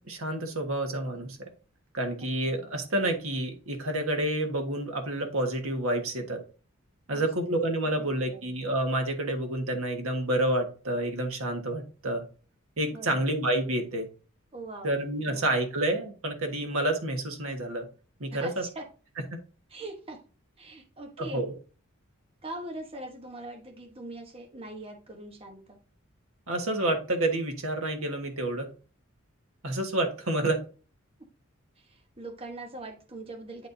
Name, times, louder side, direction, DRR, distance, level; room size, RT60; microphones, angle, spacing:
voice 1, 0.0-1.4 1.9-6.4 7.1-12.2 12.8-14.1 14.8-17.8 18.2-18.6 21.2-21.5 26.5-28.7 29.6-30.6, right 1 dB, 80° right, 4 dB, 1.5 m, -29 dB
voice 2, 8.0-8.5 12.9-13.3 14.5-15.4 18.3-18.8 19.7-20.2 20.6-21.4 22.4-25.8 31.8-33.7, right 2 dB, 25° right, 2 dB, 1.1 m, -42 dB
10.0 x 4.2 x 2.7 m, 0.36 s
head